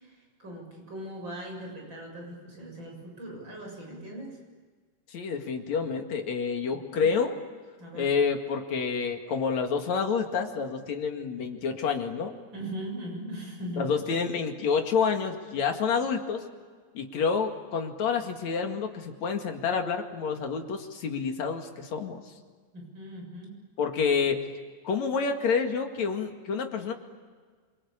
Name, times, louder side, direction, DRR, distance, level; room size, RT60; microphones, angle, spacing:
voice 1, 0.0-4.4 6.7-7.1 7.8-8.1 12.5-13.9 22.7-23.6, right 1 dB, 35° right, 0 dB, 8.1 m, -40 dB
voice 2, 5.1-7.4 7.9-12.3 13.8-16.4 16.9-22.2 23.8-24.4 24.8-26.9, left 5 dB, 65° left, 5 dB, 3.3 m, -28 dB
27.0 x 23.5 x 8.7 m, 1.5 s
omnidirectional pair, 3.5 m